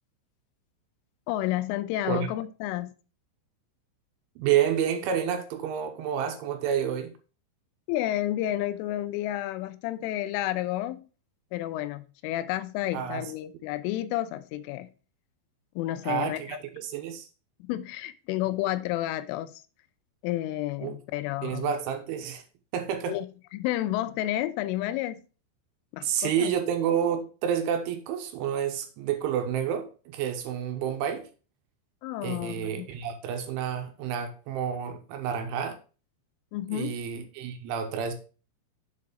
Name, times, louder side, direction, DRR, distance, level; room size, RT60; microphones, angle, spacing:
voice 1, 1.3-2.9 7.9-11.1 11.5-14.9 15.8-16.6 17.6-19.6 20.2-21.7 23.1-23.3 23.5-25.2 25.9-26.5 32.0-32.9 36.5-36.9, left 14 dB, 85° left, 3.1 m, -31 dB
voice 2, 4.4-7.1 12.9-13.2 16.0-17.3 20.8-20.9 21.4-22.4 22.7-23.2 26.0-31.3 32.2-35.8 36.7-38.1, right 9 dB, 80° right, 3.2 m, -29 dB
7.4 x 4.7 x 4.9 m
omnidirectional pair, 5.7 m